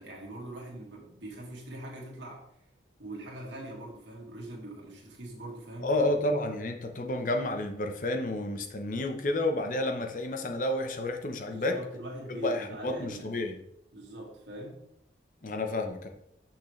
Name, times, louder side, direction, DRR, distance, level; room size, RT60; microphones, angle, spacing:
voice 1, 0.0-2.5 3.0-6.1 11.4-13.3 13.9-14.8, right 1 dB, 80° right, -2 dB, 2.0 m, -42 dB
voice 2, 5.8-11.8 12.4-13.6 15.4-16.1, left 1 dB, 45° left, 4 dB, 0.8 m, -30 dB
6.4 x 6.1 x 3.2 m, 0.74 s
head